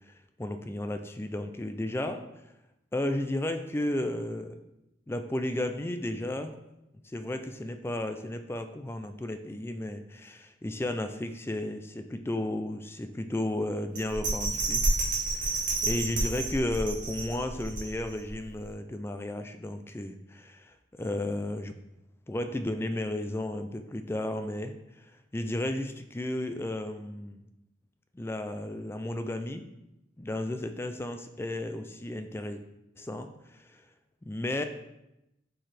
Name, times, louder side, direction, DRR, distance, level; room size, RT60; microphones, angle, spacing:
voice 1, 0.4-2.3 2.9-4.6 5.1-6.6 7.0-21.7 22.3-25.1 25.3-27.4 28.1-29.7 30.2-32.6 33.0-33.8 34.2-34.6, left 1 dB, 15° left, 7 dB, 0.3 m, -33 dB
Bell, 14.0-18.3 18.7-18.8, right 2 dB, 45° right, 1.6 m, -30 dB
7.4 x 4.7 x 3.4 m, 0.90 s
head